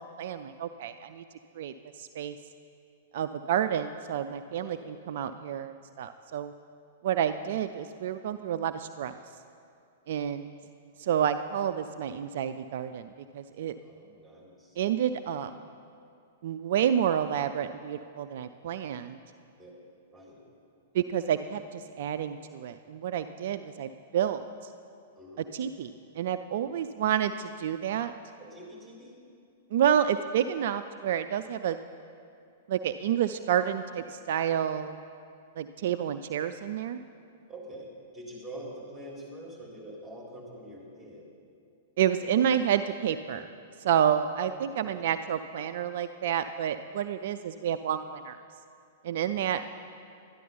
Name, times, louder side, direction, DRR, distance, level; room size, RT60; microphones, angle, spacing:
voice 1, 0.2-1.2 1.6-2.4 3.1-6.5 7.0-9.1 10.1-10.5 11.0-13.1 13.3-13.8 14.8-15.5 16.4-19.2 20.9-24.4 25.4-28.1 29.7-31.8 32.7-35.0 35.6-37.0 42.0-43.5 43.8-48.4 49.0-49.6, right 9 dB, 55° right, 10 dB, 0.4 m, -29 dB
voice 2, 13.8-14.8 19.6-19.7 20.1-20.4 25.2-25.5 28.4-29.2 37.5-37.9 38.1-41.2 44.8-45.0, right 1 dB, ahead, -4 dB, 3.6 m, -45 dB
12.5 x 11.0 x 5.6 m, 2.4 s
figure-of-eight pair, 105°, 0 cm